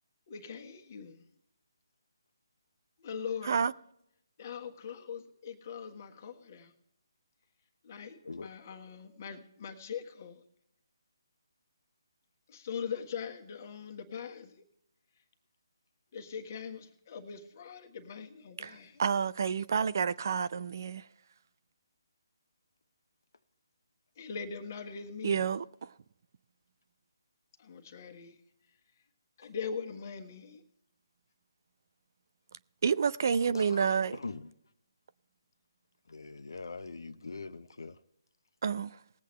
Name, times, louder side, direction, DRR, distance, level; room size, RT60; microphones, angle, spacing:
voice 1, 0.3-1.2 3.0-3.6 4.4-6.7 7.8-10.4 12.5-14.6 16.1-19.0 24.2-25.5 27.6-28.4 29.4-30.6 33.6-33.9, left 6 dB, 40° left, 1.4 m, -41 dB
voice 2, 18.6-21.1 25.2-25.9 32.8-34.2 38.6-39.0, right 6 dB, 50° right, 0.4 m, -29 dB
voice 3, 33.5-34.5 36.1-38.0, left 3 dB, 65° left, 0.7 m, -42 dB
20.0 x 8.2 x 3.2 m
figure-of-eight pair, 145°, 2 cm